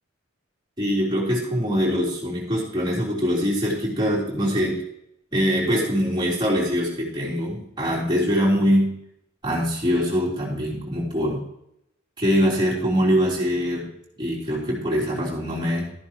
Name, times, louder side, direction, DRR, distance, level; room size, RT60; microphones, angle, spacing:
voice 1, 0.8-4.8 5.3-9.0 9.4-11.4 12.2-13.9 14.2-15.9, equal, 20° right, -5 dB, 3.5 m, -23 dB
13.0 x 11.0 x 3.0 m, 0.78 s
head